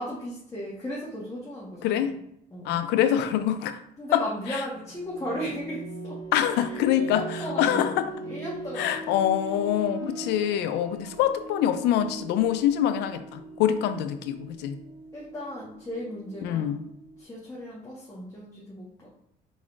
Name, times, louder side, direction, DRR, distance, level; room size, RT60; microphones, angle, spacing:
voice 1, 0.0-2.1 2.5-2.8 4.0-6.2 6.5-6.6 6.9-7.9 8.2-9.1 15.1-16.7 17.2-19.1, equal, 20° left, -6 dB, 1.2 m, -36 dB
voice 2, 1.8-2.1 2.6-3.8 4.1-4.6 6.3-8.1 8.8-14.8 16.4-16.8, left 10 dB, 85° left, 9 dB, 0.5 m, -25 dB
sound 1, 4.7-17.2, right 2 dB, 55° right, 1.5 m, -41 dB
4.7 x 4.1 x 2.5 m, 0.76 s
cardioid pair, 110°, 17 cm